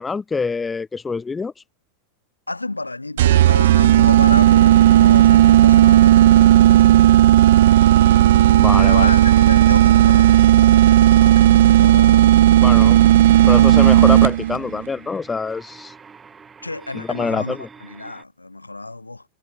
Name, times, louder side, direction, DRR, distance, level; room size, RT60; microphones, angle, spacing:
voice 1, 0.0-1.5 8.6-9.1 12.6-13.0 13.5-15.9 16.9-17.7, left 4 dB, 15° left, 0.9 m, -25 dB
voice 2, 2.5-7.1 7.6-7.9 8.7-12.5 13.0-13.1 16.6-19.2, left 2 dB, 85° left, 2.7 m, -31 dB
sound 1, 3.2-14.6, right 13 dB, 60° right, 0.8 m, -12 dB
sound 2, 12.8-18.2, right 5 dB, 15° right, 7.2 m, -45 dB
figure-of-eight pair, 90°, 0 cm